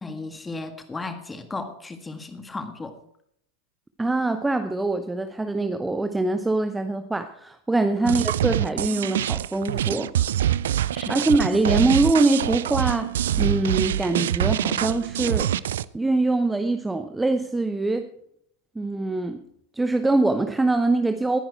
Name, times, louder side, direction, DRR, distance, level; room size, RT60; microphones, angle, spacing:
voice 1, 0.0-3.0 8.0-8.2 10.9-11.3, left 3 dB, 10° left, 7 dB, 1.8 m, -35 dB
voice 2, 4.0-10.1 11.1-15.5 15.9-18.1 18.7-19.4 19.7-21.4, right 2 dB, 10° right, 9 dB, 0.8 m, -23 dB
sound 1, 8.1-15.8, right 11 dB, 60° right, 0.4 m, -25 dB
19.5 x 10.0 x 4.6 m, 0.70 s
figure-of-eight pair, 90°, 0 cm